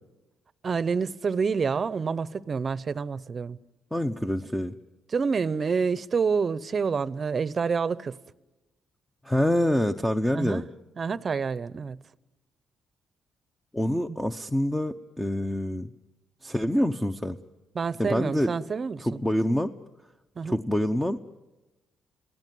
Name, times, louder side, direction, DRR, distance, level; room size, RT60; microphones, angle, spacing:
voice 1, 0.6-3.6 5.1-8.2 10.3-10.6 11.0-12.0 13.9-14.2 17.7-19.1 20.4-20.6, right 5 dB, 40° right, 0.7 m, -28 dB
voice 2, 3.9-4.7 9.2-10.7 13.7-15.9 16.4-17.4 18.0-18.5 19.0-19.7 20.4-21.2, left 1 dB, 10° left, 0.8 m, -26 dB
27.5 x 17.0 x 9.3 m
cardioid pair, 90°, 0 cm